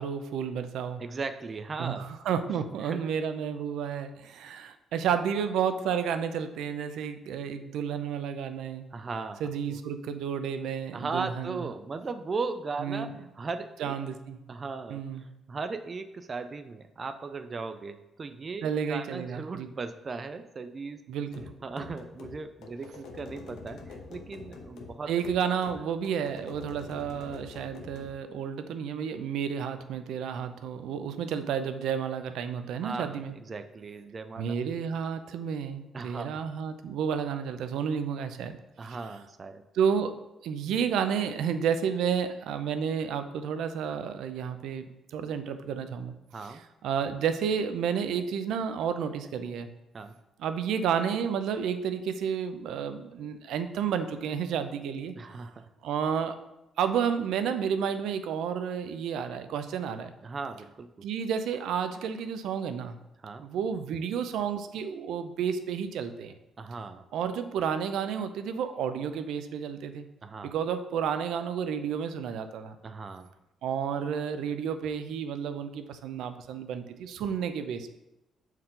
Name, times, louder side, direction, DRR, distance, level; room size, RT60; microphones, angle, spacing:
voice 1, 0.0-1.0 1.8-8.8 9.4-11.6 12.8-13.1 13.8-14.4 14.9-15.2 18.6-19.7 21.1-21.4 25.1-33.3 34.4-38.6 38.9-39.0 39.7-40.1 40.4-44.8 45.1-46.1 46.4-49.7 50.4-55.1 55.8-56.4 56.8-60.1 61.0-63.0 63.4-66.3 67.1-70.1 70.4-72.8 73.6-77.9, right 7 dB, 90° right, 10 dB, 0.5 m, -31 dB
voice 2, 1.0-2.1 2.8-3.0 8.9-9.8 10.9-13.9 14.5-21.0 21.6-25.1 32.8-34.5 35.9-36.4 38.8-39.6 46.3-46.6 49.9-50.1 55.1-55.7 60.2-61.1 63.2-63.4 66.6-67.1 70.2-70.5 72.8-73.3, right 4 dB, 30° right, 9 dB, 0.3 m, -37 dB
sound 1, 21.3-28.2, left 4 dB, 85° left, 0.9 m, -46 dB
7.7 x 4.6 x 3.7 m, 0.93 s
cardioid pair, 155°, 0 cm